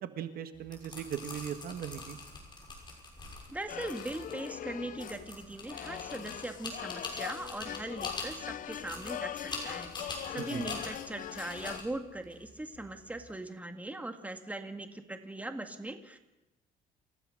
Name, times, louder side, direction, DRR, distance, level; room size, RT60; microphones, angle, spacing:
voice 1, 0.0-2.2 10.4-10.8, right 9 dB, 60° right, 9 dB, 1.5 m, -39 dB
sound 1, 0.5-13.3, left 3 dB, 25° left, 6.7 m, -44 dB
voice 2, 3.5-16.2, right 2 dB, 10° right, 6 dB, 2.0 m, -40 dB
sound 2, 3.7-11.8, left 11 dB, 55° left, 0.7 m, -41 dB
28.0 x 15.5 x 6.6 m, 1.0 s
cardioid pair, 110°, 17 cm